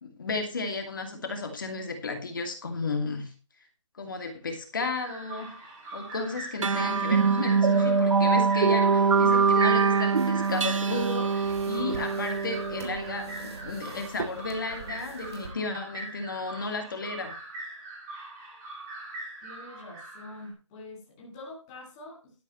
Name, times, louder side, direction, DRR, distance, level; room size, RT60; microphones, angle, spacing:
voice 1, 0.0-3.3 4.0-5.5 5.9-17.3, left 3 dB, 40° left, 5 dB, 2.5 m, -33 dB
sound 1, 5.0-20.5, right 2 dB, 10° right, 2.5 m, -42 dB
sound 2, 6.6-13.5, right 5 dB, 85° right, 0.9 m, -24 dB
sound 3, 10.1-15.5, right 3 dB, 55° right, 3.2 m, -42 dB
voice 2, 19.4-22.3, left 2 dB, 10° left, -4 dB, 2.4 m, -45 dB
12.0 x 11.5 x 3.1 m, 0.34 s
hypercardioid pair, 180°, 16 cm